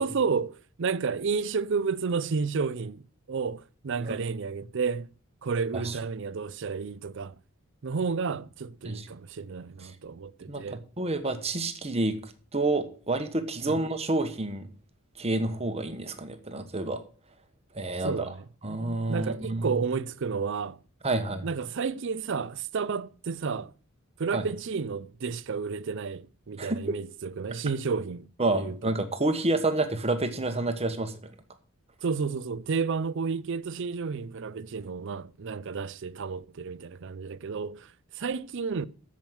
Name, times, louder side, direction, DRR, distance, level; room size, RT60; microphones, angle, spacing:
voice 1, 0.0-5.1 5.4-7.3 7.8-10.8 13.6-13.8 18.0-18.4 19.1-20.8 21.4-23.7 24.2-28.9 32.0-38.9, right 5 dB, 60° right, 0.5 m, -31 dB
voice 2, 10.5-14.7 15.2-17.0 17.7-18.3 18.6-19.7 21.0-21.5 24.3-24.4 26.6-26.8 28.4-31.3, right 2 dB, 30° right, 1.3 m, -29 dB
8.9 x 7.4 x 7.9 m
head